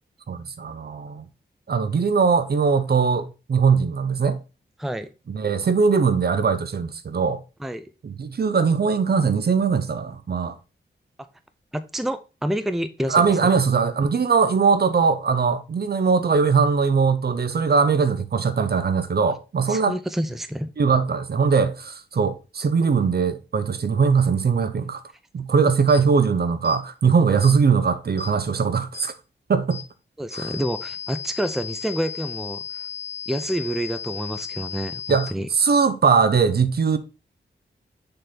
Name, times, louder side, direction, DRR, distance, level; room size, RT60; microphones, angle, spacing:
voice 1, 0.3-1.2 1.7-4.4 5.3-7.4 8.0-10.6 13.1-19.9 20.8-25.0 25.3-29.1 29.5-29.8 30.3-30.5 35.1-37.0, right 5 dB, 55° right, 0.7 m, -21 dB
voice 2, 4.8-5.1 7.6-7.9 11.7-13.5 19.7-20.7 30.2-32.6 33.3-35.5, equal, ahead, 0.5 m, -28 dB
sound 1, 25.9-26.0 26.6-26.8 27.4-27.6 28.2-28.3 28.9-29.1 29.7-29.9 30.3-35.3, left 6 dB, 35° left, 1.1 m, -35 dB
6.6 x 4.0 x 3.9 m
wide cardioid pair, 80°, 19 cm